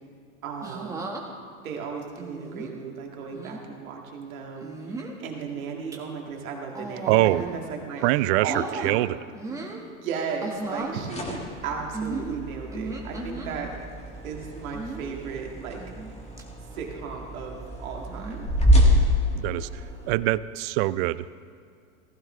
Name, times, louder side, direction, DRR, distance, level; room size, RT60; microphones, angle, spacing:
voice 1, 0.4-1.0 1.6-4.9 5.2-8.0 8.4-9.1 9.5-9.6 9.9-13.7 14.2-15.8 16.7-18.5, right 5 dB, 75° right, 0 dB, 2.2 m, -35 dB
sound 1, 0.6-1.2 2.2-2.7 3.3-3.6 4.6-5.2 5.7-6.0 6.7-7.6 8.0-8.9 9.3-9.8 10.4-11.0 11.9-13.5 14.7-15.2 15.8-16.1 16.4-16.5 18.1-18.5 19.5-19.8, right 3 dB, 5° right, 1.5 m, -36 dB
voice 2, 7.1-7.4 8.0-9.2 19.3-19.7 20.1-21.4, right 17 dB, 50° right, 17 dB, 0.4 m, -24 dB
sound 2, 10.9-20.1, equal, 15° left, 1.9 m, -27 dB
15.5 x 15.0 x 3.3 m, 2.2 s
hypercardioid pair, 110°, 42 cm